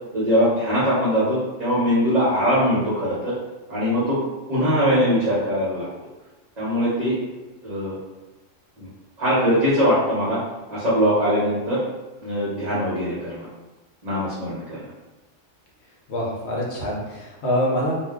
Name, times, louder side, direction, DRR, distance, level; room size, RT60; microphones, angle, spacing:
voice 1, 0.1-3.3 3.7-4.2 4.5-5.9 6.6-7.1 7.6-8.0 8.8-8.9 9.2-10.4 10.7-11.8 12.2-13.5 14.0-14.9, equal, 40° right, -10 dB, 0.9 m, -21 dB
voice 2, 16.1-17.9, equal, 65° left, -3 dB, 1.0 m, -25 dB
2.4 x 2.2 x 3.6 m, 1.1 s
omnidirectional pair, 1.3 m